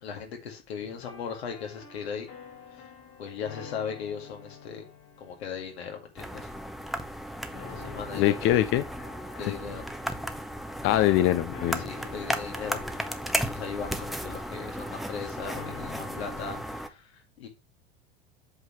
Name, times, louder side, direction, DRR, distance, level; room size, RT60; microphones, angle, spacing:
voice 1, 0.0-2.3 2.7-2.8 3.2-4.8 5.2-6.5 7.5-8.4 9.4-9.9 11.1-11.2 11.8-12.8 13.3-17.1 17.4-17.5, left 6 dB, 80° left, 2.2 m, -38 dB
sound 1, 0.8-7.2 7.5-16.6, left 6 dB, 60° left, 3.4 m, -49 dB
sound 2, 6.2-16.9, equal, ahead, 0.8 m, -35 dB
voice 2, 8.1-8.8 10.8-11.8, left 13 dB, 40° left, 0.6 m, -23 dB
7.9 x 5.6 x 3.1 m
hypercardioid pair, 85°, 31 cm